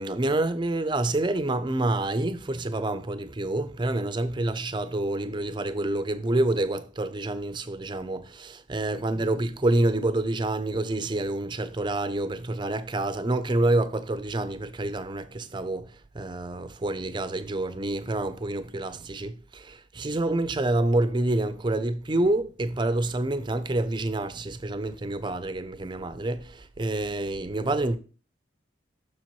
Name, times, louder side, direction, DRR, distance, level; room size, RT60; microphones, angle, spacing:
voice 1, 0.0-28.0, right 2 dB, 25° right, 0.5 m, -27 dB
7.2 x 6.3 x 3.0 m
head